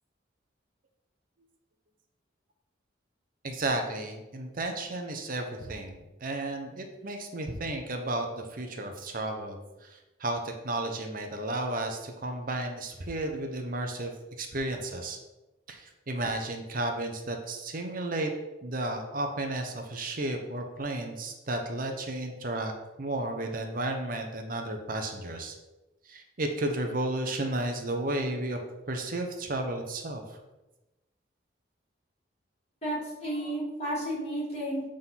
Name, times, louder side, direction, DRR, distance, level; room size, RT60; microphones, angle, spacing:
voice 1, 3.4-14.1 14.4-15.2 15.7-18.3 18.6-22.7 23.0-25.5 26.1-28.6 28.9-30.4, right 2 dB, 45° right, 4 dB, 0.8 m, -33 dB
voice 2, 32.8-34.8, right 1 dB, 35° left, -6 dB, 2.8 m, -32 dB
7.8 x 3.8 x 5.8 m, 1.0 s
head